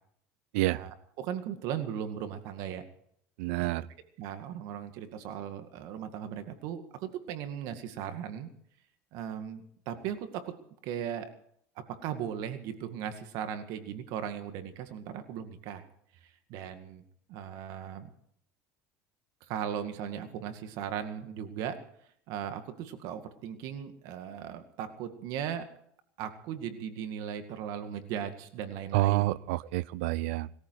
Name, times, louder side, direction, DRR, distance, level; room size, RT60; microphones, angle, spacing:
voice 1, 0.7-2.9 3.6-3.7 4.2-8.5 9.1-10.5 10.8-11.3 12.0-15.8 16.2-17.0 17.3-18.1 19.5-21.8 22.3-25.7 26.2-29.4, right 9 dB, 70° right, 8 dB, 2.1 m, -37 dB
voice 2, 3.4-3.9 28.9-30.5, right 18 dB, 85° right, 22 dB, 0.6 m, -28 dB
20.5 x 14.0 x 4.8 m, 0.66 s
supercardioid pair, 110°, 7 cm